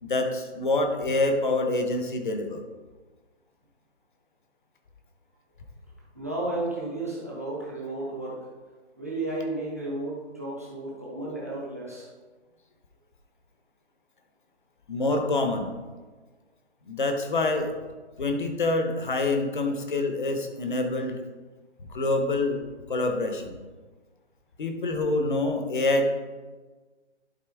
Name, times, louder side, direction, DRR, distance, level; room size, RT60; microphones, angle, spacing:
voice 1, 0.0-2.6 14.9-15.7 16.9-17.7 18.2-21.2 21.9-22.6 22.9-23.6 24.6-26.1, left 2 dB, 45° left, 5 dB, 1.0 m, -26 dB
voice 2, 6.1-8.5 9.0-12.1, right 2 dB, 15° right, -5 dB, 0.6 m, -33 dB
11.5 x 4.2 x 3.4 m, 1.3 s
hypercardioid pair, 175°, 35 cm